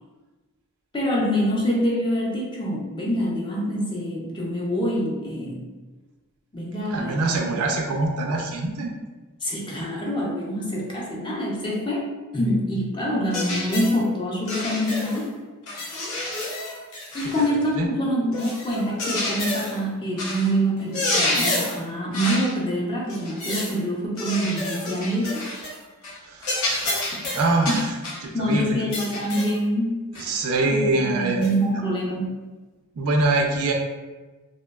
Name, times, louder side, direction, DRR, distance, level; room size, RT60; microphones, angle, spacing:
voice 1, 0.9-5.7 6.5-7.6 9.4-15.4 17.1-25.4 27.7-27.8 28.3-30.0 30.7-32.4, equal, 20° left, -3 dB, 0.4 m, -25 dB
voice 2, 6.9-8.9 17.4-17.5 17.8-17.9 26.2-27.9 28.2-28.8 30.1-31.5 33.0-33.7, right 2 dB, 70° right, 2 dB, 0.4 m, -24 dB
sound 1, 13.3-14.0 14.5-15.2 15.7-17.5 18.3-19.8 20.2-20.5 20.8-21.8 22.1-22.5 23.1-23.8 24.2-25.8 26.0-26.2 26.4-28.2 28.9-29.6 30.1-30.3 31.4-31.5, left 2 dB, 75° left, 0.6 m, -29 dB
2.6 x 2.1 x 2.2 m, 1.2 s
head